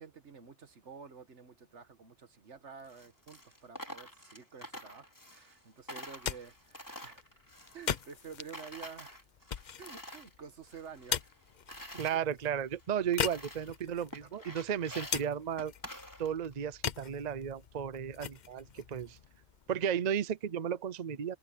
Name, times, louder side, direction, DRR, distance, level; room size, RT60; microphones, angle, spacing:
voice 1, 0.0-7.4 7.7-9.2 9.8-11.3 13.6-13.7 14.2-14.6, right 6 dB, 80° right, 1.8 m, -50 dB
Coin (dropping), 2.8-5.6 5.9-8.3 8.5-10.3 10.7-12.2 12.7-12.8 13.1-13.8 14.1-16.5, equal, 15° left, 4.1 m, -48 dB
sound 1, 6.0-19.9, left 8 dB, 45° left, 0.7 m, -41 dB
voice 2, 12.0-15.7 16.2-19.2 19.7-21.4, right 8 dB, 45° right, 0.7 m, -34 dB
open air
omnidirectional pair, 1.2 m